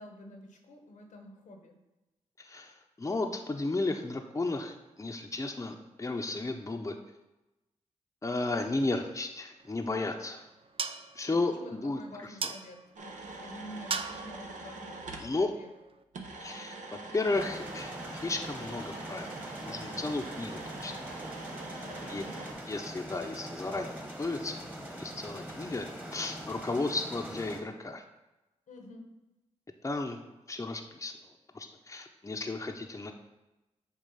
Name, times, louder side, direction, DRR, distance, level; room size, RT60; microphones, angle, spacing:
voice 1, 0.0-1.8 11.3-15.7 21.8-22.5 28.7-29.1, left 1 dB, 80° left, 3 dB, 1.0 m, -49 dB
voice 2, 2.4-7.0 8.2-10.4 11.2-12.0 12.4-12.5 15.2-15.5 16.4-17.9 18.2-19.3 19.6-20.9 22.1-22.2 22.7-24.6 25.0-28.0 29.8-31.1 31.5-33.1, left 2 dB, 25° left, 4 dB, 0.7 m, -34 dB
sound 1, 9.6-16.0, right 5 dB, 45° right, 0.4 m, -41 dB
sound 2, 13.0-15.3 16.1-22.5, right 2 dB, 75° right, 0.8 m, -44 dB
sound 3, 17.3-27.6, right 1 dB, 15° right, 1.3 m, -43 dB
7.2 x 2.4 x 5.5 m, 1.0 s
cardioid pair, 45°, 13 cm